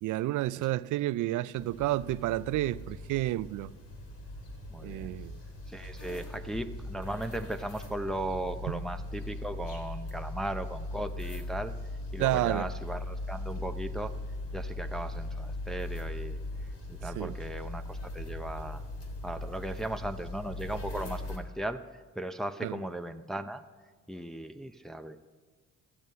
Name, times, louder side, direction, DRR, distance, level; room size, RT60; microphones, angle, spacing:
voice 1, 0.0-3.7 4.8-5.4 8.7-8.8 12.2-12.7 17.2-17.3 22.6-22.7, right 15 dB, 80° right, 0.5 m, -30 dB
sound 1, 1.6-21.4, left 2 dB, 50° left, 3.5 m, -39 dB
voice 2, 4.7-5.1 5.7-11.7 12.1-14.2 14.5-18.8 19.2-23.6 24.1-25.2, right 1 dB, ahead, 0.6 m, -37 dB
15.5 x 12.5 x 5.6 m
cardioid pair, 90°, 30 cm